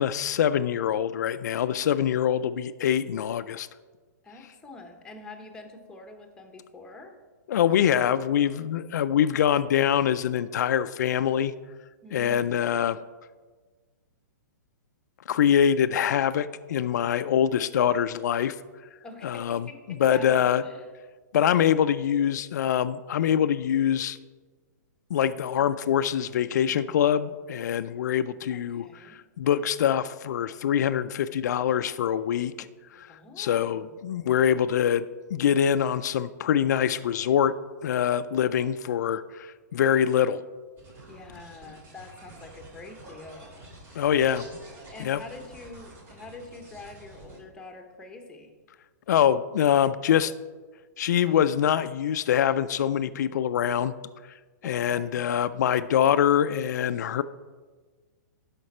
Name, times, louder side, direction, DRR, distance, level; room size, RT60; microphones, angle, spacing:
voice 1, 0.0-3.7 7.5-11.5 12.1-13.0 15.3-18.6 19.2-19.7 20.0-20.6 21.3-24.2 25.1-32.7 32.9-35.0 35.3-37.6 37.8-40.4 43.9-44.5 45.0-45.2 49.1-50.3 51.0-53.9 54.3-54.4 54.6-57.2, left 9 dB, 70° left, 11 dB, 0.4 m, -24 dB
voice 2, 4.2-7.2 12.0-12.7 19.0-20.9 28.5-29.2 33.1-33.9 41.1-43.6 44.9-48.5 54.6-55.3, left 2 dB, 10° left, 4 dB, 1.0 m, -46 dB
sound 1, 40.8-47.4, right 1 dB, 25° right, 2.5 m, -48 dB
12.5 x 5.1 x 4.3 m, 1.4 s
hypercardioid pair, 140°, 10 cm